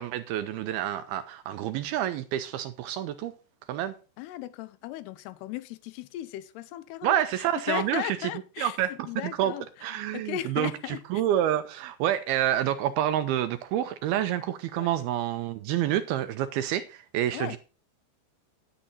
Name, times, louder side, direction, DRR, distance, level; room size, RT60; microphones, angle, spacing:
voice 1, 0.0-3.3 3.7-3.9 7.0-8.3 8.6-8.9 9.4-9.5 9.8-17.6, right 11 dB, 80° right, 2.3 m, -28 dB
voice 2, 4.2-9.7 10.1-11.0 14.8-14.9 17.3-17.6, left 14 dB, 80° left, 2.7 m, -36 dB
10.0 x 10.0 x 4.0 m
omnidirectional pair, 4.9 m